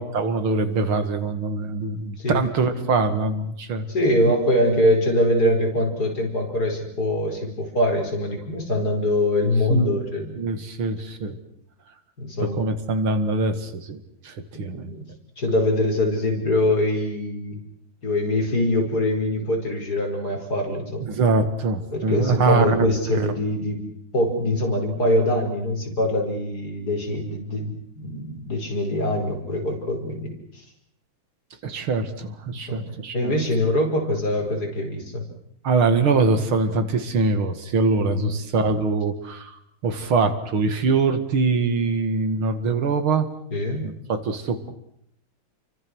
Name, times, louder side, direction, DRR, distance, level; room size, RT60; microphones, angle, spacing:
voice 1, 0.0-3.9 9.7-10.0 10.4-11.4 12.4-14.9 21.0-23.3 31.6-33.4 35.6-43.3 43.7-44.7, right 4 dB, 80° right, 9 dB, 2.8 m, -23 dB
voice 2, 3.9-10.3 12.2-12.6 14.5-15.0 15.4-17.6 18.0-21.1 21.9-23.9 24.1-30.6 32.5-32.8 33.1-35.2 38.1-38.4 43.5-43.9, left 1 dB, 50° left, 1 dB, 5.5 m, -23 dB
29.5 x 24.5 x 6.3 m, 0.70 s
omnidirectional pair, 2.3 m